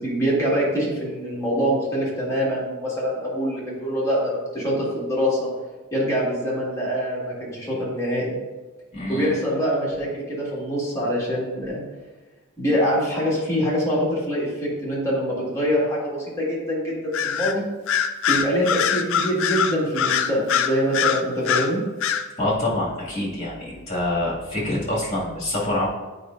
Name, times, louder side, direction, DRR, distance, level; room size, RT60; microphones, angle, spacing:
voice 1, 0.0-5.5 5.9-8.4 9.1-11.8 12.6-17.7 18.3-21.8, equal, 15° left, -6 dB, 1.8 m, -24 dB
voice 2, 8.9-9.3 22.4-25.9, left 1 dB, 30° left, -6 dB, 2.1 m, -26 dB
Bird vocalization bird call bird song, 17.1-17.5 17.9-21.7 22.0-22.2, left 8 dB, 65° left, 0.4 m, -22 dB
8.2 x 5.3 x 2.6 m, 1.2 s
head